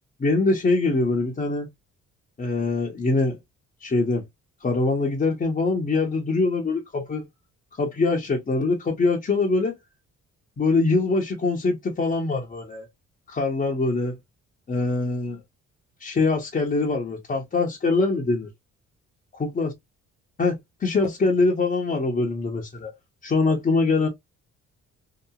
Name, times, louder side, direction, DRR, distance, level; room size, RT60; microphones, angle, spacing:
voice 1, 0.2-1.7 2.4-3.4 3.8-4.2 4.6-7.3 7.8-9.7 10.6-12.9 13.3-14.2 14.7-15.4 16.0-18.5 19.4-19.7 20.4-22.9 23.2-24.1, left 3 dB, 30° left, 0.8 m, -23 dB
2.8 x 2.3 x 2.3 m
cardioid pair, 90°, 30 cm